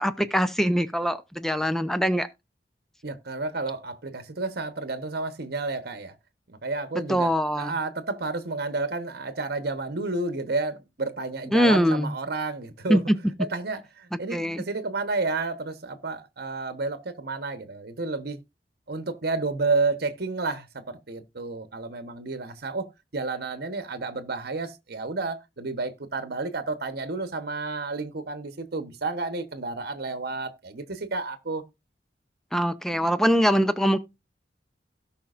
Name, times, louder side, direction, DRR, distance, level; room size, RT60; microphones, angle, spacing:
voice 1, 0.0-2.3 7.1-7.7 11.5-12.1 12.9-13.2 14.3-14.6 32.5-34.0, equal, ahead, 0.6 m, -23 dB
voice 2, 3.0-6.1 6.5-13.0 13.4-18.4 18.9-22.9 23.1-31.6, right 3 dB, 60° right, 1.1 m, -31 dB
17.0 x 5.7 x 2.5 m
head